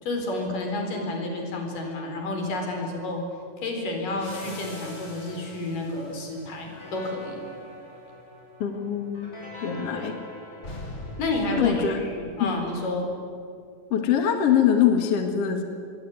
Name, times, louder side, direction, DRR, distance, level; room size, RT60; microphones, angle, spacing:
voice 1, 0.0-3.2 3.6-7.4 9.9-10.1 11.2-13.1, left 2 dB, 80° left, 3 dB, 6.0 m, -30 dB
sound 1, 4.1-12.6, left 1 dB, 20° left, 6.3 m, -42 dB
voice 2, 8.6-9.3 9.6-10.1 11.6-12.0 12.4-12.5 13.9-15.6, left 9 dB, 50° left, 5 dB, 2.7 m, -23 dB
26.5 x 21.5 x 9.7 m, 2.4 s
omnidirectional pair, 3.8 m